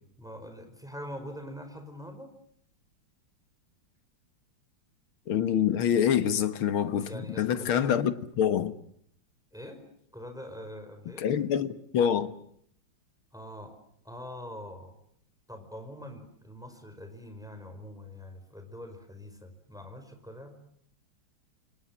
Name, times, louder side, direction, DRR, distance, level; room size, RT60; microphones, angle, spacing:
voice 1, 0.2-2.3 6.9-8.0 9.5-9.8 10.1-11.3 13.3-13.7 14.0-14.9 15.5-20.6, equal, ahead, 4.9 m, -44 dB
voice 2, 5.3-8.7 11.2-12.3, left 9 dB, 75° left, 2.2 m, -26 dB
28.5 x 26.0 x 7.6 m
omnidirectional pair, 2.3 m